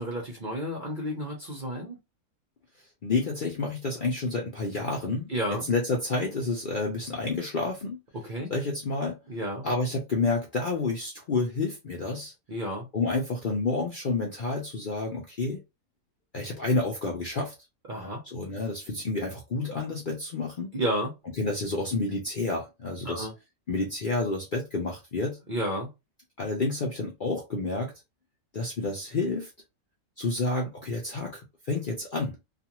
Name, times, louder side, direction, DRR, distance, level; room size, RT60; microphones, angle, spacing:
voice 1, 0.0-2.0 5.3-5.7 8.2-8.5 9.3-9.7 12.5-12.9 17.9-18.2 20.7-21.1 23.0-23.3 25.5-25.9, right 1 dB, 45° right, 0.6 m, -31 dB
voice 2, 3.0-5.3 5.7-8.0 8.5-9.2 9.6-12.3 12.9-15.6 16.3-17.5 18.3-20.7 21.4-23.3 23.7-25.4 26.4-27.9 28.5-29.5 30.2-32.4, left 3 dB, 50° left, 0.6 m, -29 dB
2.5 x 2.5 x 2.9 m
omnidirectional pair, 1.6 m